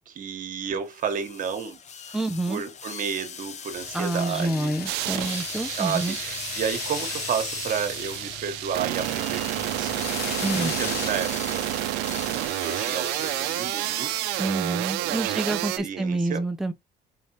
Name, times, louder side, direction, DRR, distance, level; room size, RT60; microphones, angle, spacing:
voice 1, 0.1-1.8 2.1-2.2 2.5-4.7 5.8-9.9 10.6-11.6 12.6-14.1 15.0-16.4, right 7 dB, 55° right, 1.2 m, -31 dB
sound 1, 0.9-14.9, left 7 dB, 45° left, 0.9 m, -38 dB
voice 2, 2.1-2.6 3.9-6.2 10.4-10.7 14.4-16.7, right 2 dB, 5° right, 0.6 m, -28 dB
sound 2, 3.7-11.1, left 7 dB, 70° left, 1.3 m, -39 dB
sound 3, 4.9-15.8, right 17 dB, 90° right, 0.4 m, -30 dB
4.2 x 3.5 x 2.9 m
cardioid pair, 90°, 16 cm